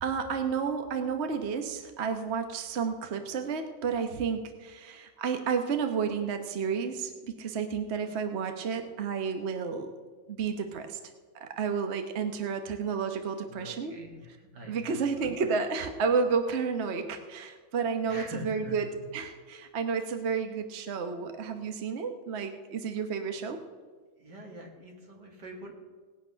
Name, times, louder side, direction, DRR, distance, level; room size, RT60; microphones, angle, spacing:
voice 1, 0.0-9.9 10.3-11.0 11.3-14.0 14.7-18.8 19.1-23.6, right 5 dB, 45° right, 6 dB, 1.1 m, -31 dB
voice 2, 13.5-15.3 18.1-19.1 24.2-25.7, equal, 75° right, 1 dB, 2.7 m, -44 dB
18.5 x 8.5 x 5.7 m, 1.4 s
omnidirectional pair, 1.9 m